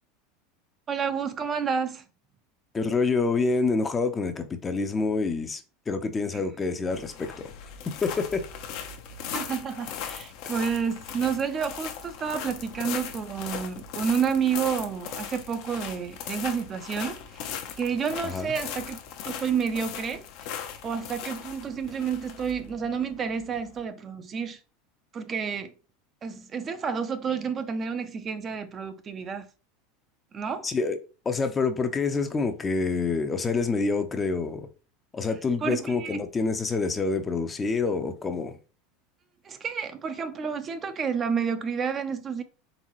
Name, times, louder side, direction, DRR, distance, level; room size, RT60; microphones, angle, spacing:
voice 1, 0.9-2.0 6.3-6.5 9.3-19.0 19.3-20.5 20.8-24.6 25.1-25.7 26.2-29.5 30.3-30.7 35.6-36.2 39.4-42.4, right 6 dB, 35° right, 0.6 m, -30 dB
voice 2, 2.7-7.5 7.9-8.4 18.2-18.5 30.6-31.0 31.3-34.7 35.1-38.6, left 4 dB, 25° left, 0.6 m, -27 dB
sound 1, 6.9-23.8, left 8 dB, 60° left, 0.7 m, -39 dB
4.0 x 3.5 x 3.0 m
hypercardioid pair, 100°, 0 cm